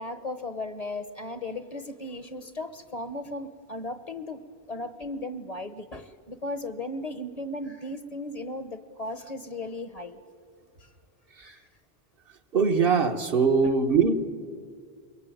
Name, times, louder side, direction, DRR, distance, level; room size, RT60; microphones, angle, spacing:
voice 1, 0.0-4.4 4.7-10.2 10.8-10.9 11.4-11.6, left 2 dB, 40° left, 11 dB, 1.1 m, -36 dB
voice 2, 12.5-14.1, right 5 dB, 65° right, 6 dB, 1.4 m, -22 dB
22.5 x 22.0 x 9.0 m, 2.1 s
omnidirectional pair, 1.0 m